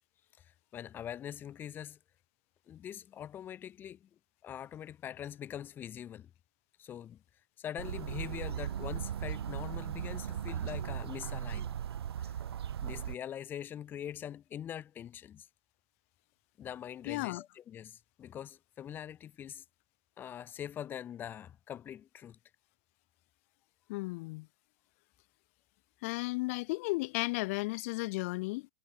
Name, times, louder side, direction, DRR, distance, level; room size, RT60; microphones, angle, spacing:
voice 1, 0.4-2.0 2.7-4.1 4.4-6.3 6.8-7.2 7.6-11.7 12.2-12.4 12.8-15.5 16.6-19.6 20.2-22.4, left 10 dB, 15° left, 4.7 m, -43 dB
sound 1, 7.8-13.2, right 9 dB, 70° right, 3.6 m, -37 dB
voice 2, 17.1-17.4 23.9-24.5 26.0-28.7, left 24 dB, 35° left, 1.9 m, -34 dB
hypercardioid pair, 170°, 13 cm